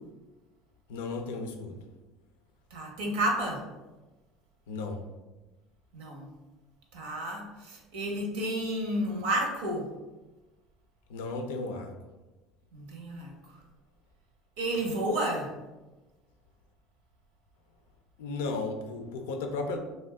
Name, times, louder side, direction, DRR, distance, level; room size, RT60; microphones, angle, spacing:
voice 1, 0.9-1.8 4.7-5.0 11.1-11.9 18.2-19.8, left 3 dB, 85° left, 5 dB, 0.4 m, -34 dB
voice 2, 2.7-3.7 5.9-6.3 6.9-9.9 12.7-13.3 14.6-15.5, right 1 dB, 80° right, 1 dB, 0.7 m, -31 dB
2.6 x 2.2 x 3.4 m, 1.1 s
supercardioid pair, 85°, 0 cm